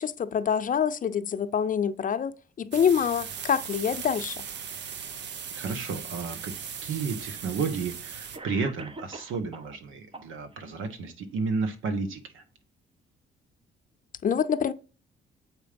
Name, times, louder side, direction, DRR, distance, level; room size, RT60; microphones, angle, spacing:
voice 1, 0.0-4.4 14.2-14.7, left 7 dB, 40° left, 0.6 m, -26 dB
Setting Off a Morning Glory, 2.7-8.4, right 7 dB, 60° right, 0.8 m, -38 dB
voice 2, 5.5-6.5 6.8-12.4, right 4 dB, 80° right, 1.4 m, -32 dB
Cough, 6.6-6.7 7.7-7.8 8.3-9.8 10.1-10.8, right 2 dB, 30° right, 0.7 m, -43 dB
7.4 x 4.8 x 5.2 m
cardioid pair, 90°, 20 cm